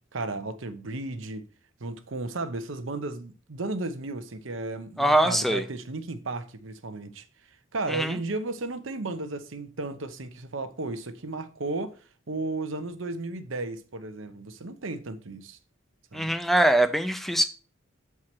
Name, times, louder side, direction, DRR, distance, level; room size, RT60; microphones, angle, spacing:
voice 1, 0.1-1.5 1.8-7.2 7.7-12.0 12.3-15.6 16.1-16.3, right 2 dB, 80° right, 0.9 m, -34 dB
voice 2, 5.0-5.6 7.9-8.2 16.1-17.4, right 1 dB, ahead, 0.4 m, -22 dB
7.2 x 4.7 x 4.4 m
head